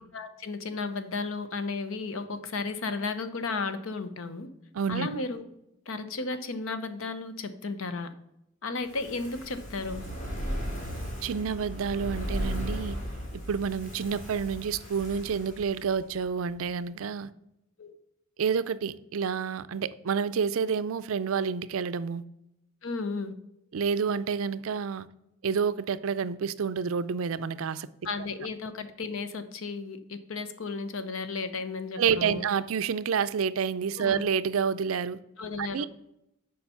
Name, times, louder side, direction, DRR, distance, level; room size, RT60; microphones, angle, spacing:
voice 1, 0.1-4.5 4.9-5.4 5.9-8.1 8.6-10.0 17.8-18.0 22.8-23.3 28.0-32.5 34.0-34.2 35.4-35.9, left 3 dB, 75° left, 11 dB, 0.8 m, -34 dB
voice 2, 4.7-5.1 11.2-13.0 13.5-17.3 18.4-22.2 23.7-25.1 25.4-27.9 32.0-35.2 35.6-35.9, right 6 dB, 80° right, 15 dB, 0.4 m, -29 dB
Fire, 8.8-16.2 16.5-16.6, equal, 35° left, 2.6 m, -36 dB
7.0 x 5.0 x 5.6 m, 0.85 s
head